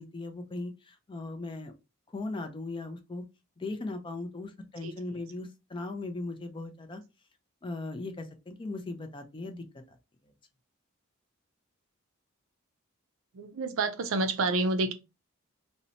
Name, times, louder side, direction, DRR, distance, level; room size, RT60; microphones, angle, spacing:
voice 1, 0.0-1.7 2.1-3.2 3.6-7.0 7.6-10.0, left 2 dB, 25° left, 0.4 m, -38 dB
voice 2, 13.3-14.9, right 3 dB, 70° right, 0.4 m, -28 dB
2.7 x 2.0 x 2.7 m
head